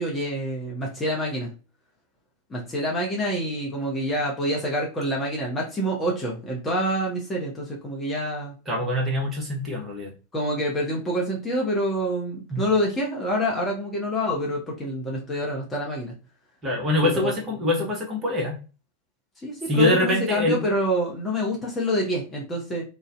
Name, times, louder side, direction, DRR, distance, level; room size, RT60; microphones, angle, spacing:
voice 1, 0.0-1.5 2.5-8.5 10.3-16.1 17.0-17.3 19.4-22.8, equal, 15° left, -3 dB, 0.7 m, -27 dB
voice 2, 8.7-10.1 12.5-12.6 16.6-18.6 19.7-20.6, left 1 dB, 15° right, -2 dB, 0.9 m, -24 dB
2.5 x 2.0 x 2.4 m, 0.33 s
figure-of-eight pair, 90°, 0 cm